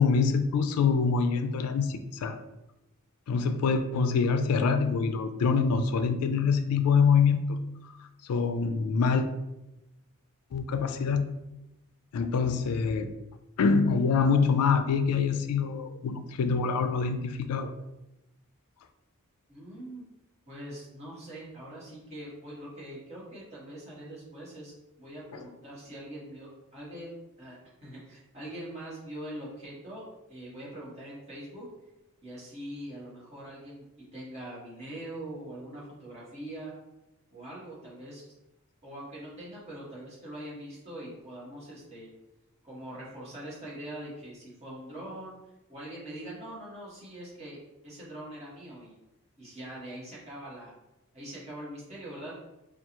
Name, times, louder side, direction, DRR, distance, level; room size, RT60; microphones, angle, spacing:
voice 1, 0.0-2.4 3.3-7.4 8.3-9.3 10.5-11.2 12.1-13.1 13.6-17.7, left 5 dB, 85° left, 9 dB, 0.3 m, -25 dB
voice 2, 19.5-20.0 20.5-24.7 25.0-27.1 27.4-30.0 30.3-31.7 32.2-36.7 37.3-38.2 38.8-42.1 42.6-45.3 45.7-47.6 47.8-49.0 49.4-50.7 51.1-52.4, right 1 dB, 30° right, -7 dB, 1.4 m, -43 dB
4.5 x 2.3 x 2.9 m, 0.93 s
head